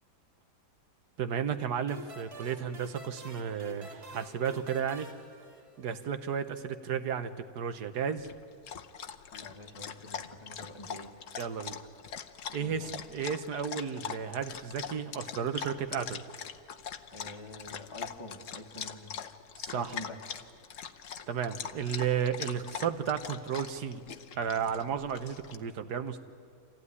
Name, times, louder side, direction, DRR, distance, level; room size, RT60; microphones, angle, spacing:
voice 1, 1.2-5.1 5.8-7.3 7.5-8.3 11.4-11.8 12.5-16.2 19.6-19.9 21.3-24.0 24.4-26.2, right 7 dB, 70° right, 9 dB, 1.5 m, -33 dB
sound 1, 1.9-6.2, left 1 dB, 20° right, 1.9 m, -48 dB
Dog, 8.2-25.6, left 8 dB, 55° left, 1.1 m, -42 dB
voice 2, 9.3-11.1 12.6-13.0 17.1-19.2 19.7-20.2, left 1 dB, 20° left, -1 dB, 1.3 m, -46 dB
26.5 x 15.0 x 9.7 m, 2.2 s
omnidirectional pair, 1.8 m